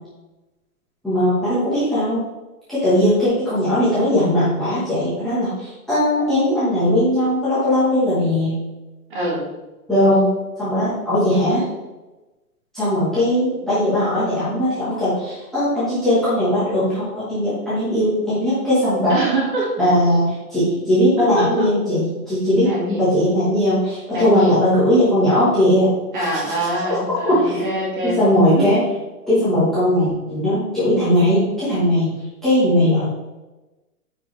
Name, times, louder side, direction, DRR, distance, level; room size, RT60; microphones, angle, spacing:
voice 1, 1.0-2.2 2.7-8.5 9.9-10.3 10.6-11.6 12.7-19.1 19.8-22.7 23.0-25.9 26.3-26.4 27.2-27.6 28.2-28.8 29.3-32.1 32.4-33.0, left 1 dB, ahead, -15 dB, 1.4 m, -18 dB
voice 2, 9.1-9.4 19.1-19.9 21.2-21.7 22.6-23.0 24.1-24.6 26.1-28.2 28.6-28.7, right 1 dB, 35° right, -4 dB, 2.0 m, -24 dB
9.2 x 4.9 x 3.4 m, 1.1 s
hypercardioid pair, 180°, 45 cm